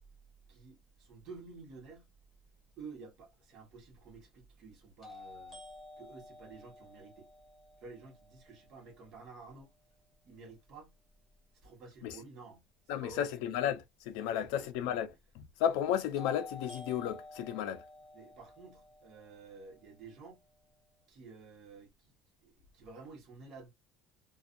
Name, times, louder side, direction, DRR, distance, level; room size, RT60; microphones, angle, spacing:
voice 1, 0.5-2.1 2.8-5.6 6.0-7.3 7.8-9.7 10.3-10.9 11.6-13.3 14.4-14.7 18.1-20.4 21.1-22.1 22.4-23.7, right 4 dB, 40° right, 1.2 m, -51 dB
sound 1, 3.1-3.2 5.0-8.9 16.2-20.2, left 3 dB, 10° left, 0.9 m, -51 dB
voice 2, 12.9-15.1 15.4-17.8, left 9 dB, 70° left, 0.5 m, -33 dB
2.5 x 2.3 x 2.5 m
cardioid pair, 170°, 0 cm